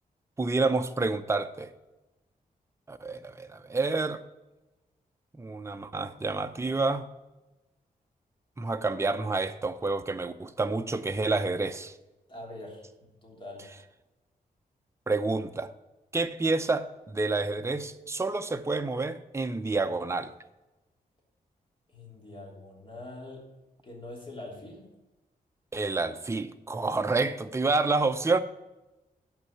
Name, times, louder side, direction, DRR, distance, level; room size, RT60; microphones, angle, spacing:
voice 1, 0.4-1.7 2.9-4.2 5.4-7.0 8.6-11.9 15.1-15.7 16.1-20.3 25.7-28.4, right 3 dB, 20° right, 0.6 m, -28 dB
voice 2, 12.3-13.7 21.9-23.4 23.8-24.9, left 2 dB, 35° left, 3.0 m, -44 dB
9.4 x 5.5 x 7.1 m
wide cardioid pair, 110°, 15 cm